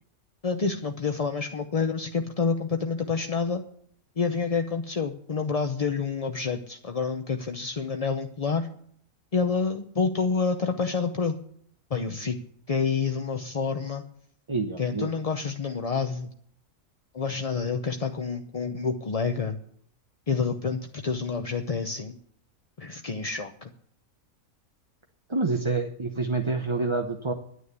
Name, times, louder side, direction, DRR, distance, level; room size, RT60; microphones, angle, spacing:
voice 1, 0.4-3.6 4.2-8.7 9.3-11.3 11.9-12.4 12.7-14.1 14.8-16.3 17.1-19.6 20.3-22.2 22.8-23.7, left 5 dB, 35° left, 6 dB, 0.7 m, -28 dB
voice 2, 14.5-15.1 25.3-27.3, right 3 dB, 25° right, 3 dB, 0.9 m, -27 dB
11.0 x 9.7 x 8.2 m, 0.64 s
omnidirectional pair, 1.5 m